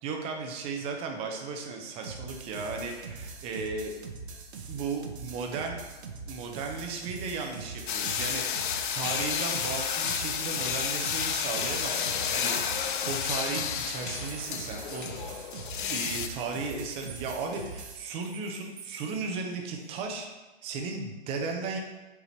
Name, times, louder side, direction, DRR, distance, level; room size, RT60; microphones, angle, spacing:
voice 1, 0.0-3.9 4.7-5.8 6.3-15.1 15.9-20.3 20.6-21.8, right 4 dB, 15° right, 3 dB, 0.6 m, -35 dB
sound 1, 2.0-18.0, right 4 dB, 75° right, 1.0 m, -43 dB
sound 2, 6.6-8.5 8.7-20.1, right 6 dB, 35° right, 1.4 m, -53 dB
sound 3, 7.9-16.3, left 8 dB, 50° left, 0.5 m, -31 dB
8.2 x 4.8 x 3.2 m, 1.2 s
hypercardioid pair, 130°, 33 cm